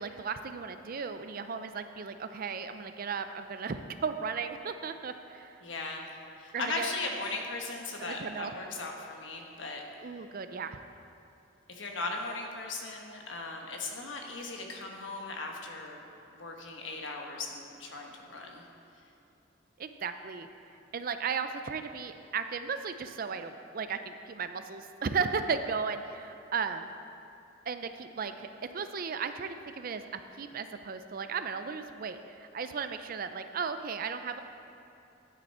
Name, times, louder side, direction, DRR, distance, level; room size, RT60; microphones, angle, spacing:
voice 1, 0.0-5.6 6.5-6.9 8.0-8.5 10.0-10.8 19.8-20.5 20.9-26.9 27.7-28.5 28.7-30.1 30.4-34.4, right 5 dB, 50° right, 9 dB, 0.5 m, -35 dB
voice 2, 5.6-6.1 6.4-9.8 11.7-16.0 16.3-18.7, left 3 dB, 85° left, 1 dB, 1.3 m, -38 dB
9.6 x 9.2 x 4.3 m, 2.8 s
head